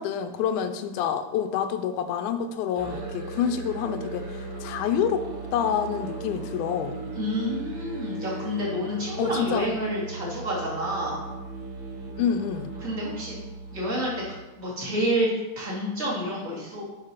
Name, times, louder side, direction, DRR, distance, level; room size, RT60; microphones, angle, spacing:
voice 1, 0.0-5.3 5.5-7.0 9.2-9.7 12.2-12.7, left 8 dB, 85° left, 9 dB, 2.0 m, -27 dB
Musical instrument, 2.8-14.4, right 3 dB, 50° right, 3.1 m, -37 dB
voice 2, 7.1-11.2 12.8-13.4 13.7-14.1 14.5-16.9, equal, 20° right, -6 dB, 2.4 m, -29 dB
6.5 x 5.2 x 5.6 m, 1.1 s
omnidirectional pair, 3.5 m